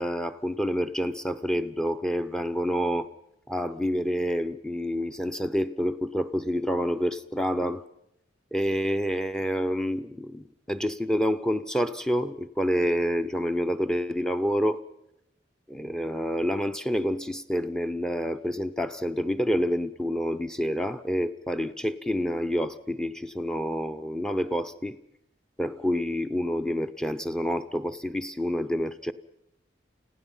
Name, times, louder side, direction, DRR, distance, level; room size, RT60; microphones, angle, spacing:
voice 1, 0.0-3.1 3.5-7.8 8.5-14.8 15.7-25.0 25.6-29.1, equal, 5° left, 10 dB, 0.7 m, -28 dB
29.0 x 16.5 x 5.6 m, 0.83 s
head